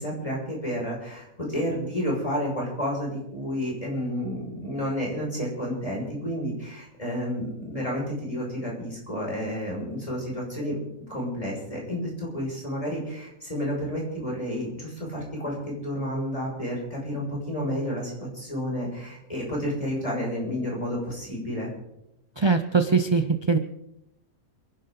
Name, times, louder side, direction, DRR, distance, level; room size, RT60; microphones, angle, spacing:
voice 1, 0.0-10.8 11.1-21.7, equal, 25° left, -3 dB, 6.1 m, -30 dB
voice 2, 22.4-23.6, right 4 dB, 30° right, 7 dB, 0.5 m, -22 dB
28.0 x 11.5 x 3.9 m, 0.85 s
omnidirectional pair, 1.5 m